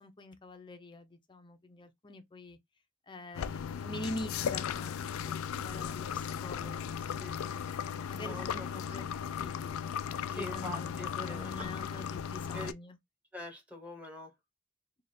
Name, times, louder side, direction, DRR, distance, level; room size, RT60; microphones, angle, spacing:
voice 1, 0.0-2.6 3.1-5.0 5.2-6.1 6.4-6.9 8.1-9.0 9.4-13.0, left 2 dB, 25° left, 0.6 m, -44 dB
sound 1, 3.3-12.7, left 7 dB, 85° left, 0.4 m, -36 dB
voice 2, 7.2-7.9 8.2-8.7 10.3-11.7 12.5-12.7 13.3-14.3, left 1 dB, 5° right, 1.1 m, -44 dB
3.4 x 2.4 x 3.9 m
head